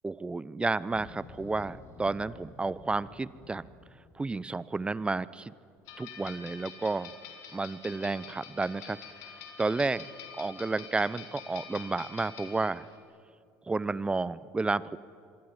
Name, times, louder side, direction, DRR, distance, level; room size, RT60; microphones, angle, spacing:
voice 1, 0.0-3.7 4.1-5.5 6.0-7.1 7.5-9.0 9.3-10.1 10.4-12.9 13.6-15.0, right 3 dB, 15° right, 19 dB, 0.8 m, -31 dB
sound 1, 0.9-5.1, left 5 dB, 50° left, 2.9 m, -52 dB
sound 2, 5.9-13.0, left 7 dB, 75° left, 4.4 m, -46 dB
26.5 x 23.0 x 9.8 m, 2.4 s
supercardioid pair, 85°, 7 cm